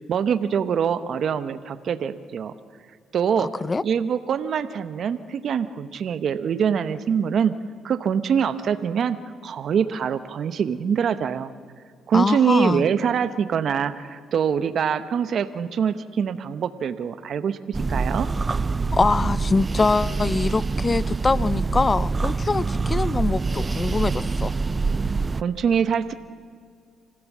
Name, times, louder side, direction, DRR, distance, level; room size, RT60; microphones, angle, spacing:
voice 1, 0.1-2.5 3.1-3.5 3.8-7.5 7.8-9.2 9.4-11.5 12.1-18.3 25.3-26.1, right 7 dB, 60° right, 0.9 m, -24 dB
voice 2, 3.4-3.8 12.1-12.8 18.9-24.5, left 3 dB, 30° left, 0.5 m, -23 dB
sound 1, 17.7-25.4, right 4 dB, 30° right, 0.5 m, -25 dB
25.5 x 16.0 x 7.4 m
cardioid pair, 90°, 0 cm